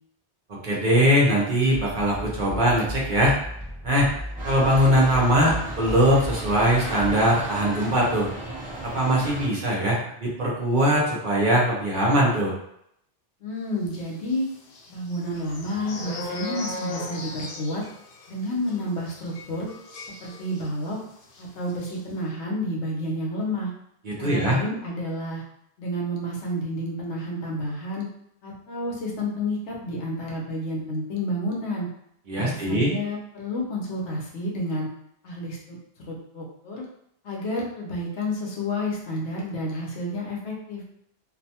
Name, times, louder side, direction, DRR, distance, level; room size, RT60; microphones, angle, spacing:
voice 1, 0.5-3.4 3.8-4.1 4.4-8.3 8.8-12.5 24.0-24.6 32.3-32.9, equal, 50° right, -4 dB, 0.8 m, -21 dB
sound 1, 1.7-7.3, equal, 15° left, 0.9 m, -36 dB
sound 2, 4.4-9.5, right 1 dB, 10° right, 0.7 m, -36 dB
voice 2, 13.4-14.5 14.9-17.8 18.3-19.7 20.2-21.0 21.4-23.7 24.2-25.4 25.8-28.1 28.4-31.9 32.3-34.9 35.2-35.8 36.1-36.8 37.2-40.8, left 1 dB, 85° left, -2 dB, 1.0 m, -30 dB
sound 3, 14.2-20.9 21.2-21.4 21.7-22.0, left 3 dB, 60° left, 0.7 m, -38 dB
2.6 x 2.2 x 2.7 m, 0.75 s
omnidirectional pair, 1.1 m